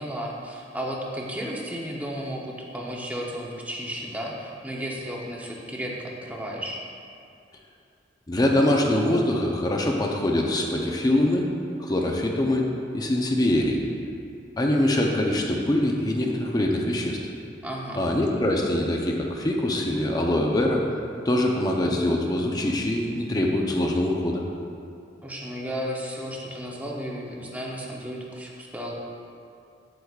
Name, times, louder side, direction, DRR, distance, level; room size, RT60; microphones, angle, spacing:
voice 1, 0.0-6.8 17.6-18.0 25.2-28.9, equal, 10° right, -2 dB, 0.8 m, -33 dB
voice 2, 8.3-11.5 11.8-12.7 12.9-13.8 14.6-17.2 17.9-20.8 21.2-24.4, left 1 dB, 20° left, 0 dB, 0.6 m, -23 dB
8.5 x 7.9 x 2.4 m, 2.5 s
head